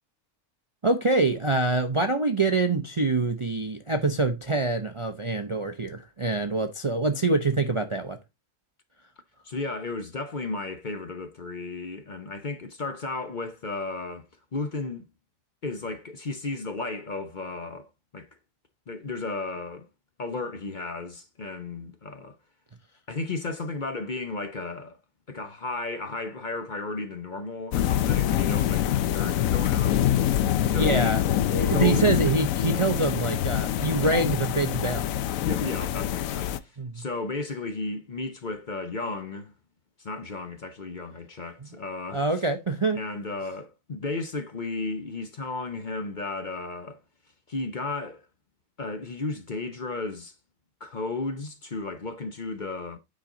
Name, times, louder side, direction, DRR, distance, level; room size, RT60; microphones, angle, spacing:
voice 1, 0.8-8.2 30.7-31.2 31.5-35.1 36.8-37.0 42.1-43.0, right 3 dB, 35° right, 0.6 m, -25 dB
voice 2, 9.4-14.3 14.5-15.1 15.6-17.9 18.1-18.3 18.9-19.9 20.2-22.3 23.1-25.0 25.3-30.0 30.7-31.2 31.6-32.2 35.4-39.5 40.0-42.2 42.9-47.0 47.5-48.3 48.8-50.3 50.8-53.0, left 3 dB, 40° left, 0.9 m, -34 dB
sound 1, 27.7-36.6, left 11 dB, 85° left, 1.0 m, -25 dB
8.7 x 5.2 x 3.8 m
omnidirectional pair, 1.4 m